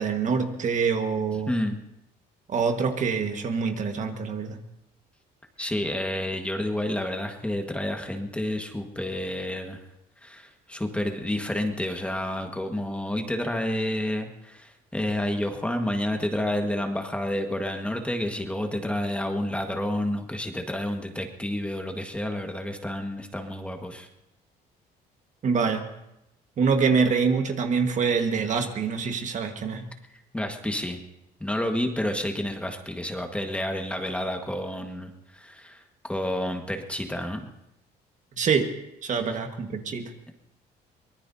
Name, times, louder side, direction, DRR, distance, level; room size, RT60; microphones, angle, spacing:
voice 1, 0.0-1.5 2.5-4.6 25.4-25.8 26.6-29.9 38.4-38.7 39.0-40.1, right 5 dB, 45° right, 5 dB, 1.5 m, -25 dB
voice 2, 1.5-1.8 5.6-9.8 10.2-24.1 30.3-31.0 31.4-37.4 39.2-39.4, left 1 dB, 5° left, 4 dB, 1.6 m, -30 dB
24.0 x 19.0 x 2.8 m, 0.84 s
cardioid pair, 110°, 17 cm